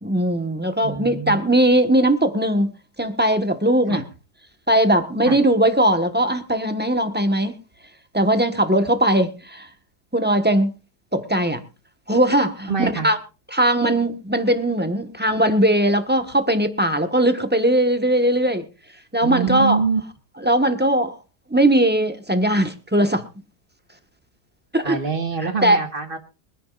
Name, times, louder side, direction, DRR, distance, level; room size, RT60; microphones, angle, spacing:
voice 1, 0.0-2.7 3.0-4.0 4.7-7.6 8.1-9.7 10.1-10.7 11.1-11.6 12.1-13.2 13.5-18.7 19.1-19.8 20.4-21.1 21.5-23.2 24.7-25.0 25.6-25.8, right 1 dB, 5° right, 1.3 m, -19 dB
voice 2, 0.8-1.4 3.9-4.0 5.3-5.4 12.7-13.1 19.2-20.0 24.8-26.2, right 5 dB, 35° right, 1.9 m, -25 dB
24.0 x 10.5 x 2.5 m
omnidirectional pair, 1.7 m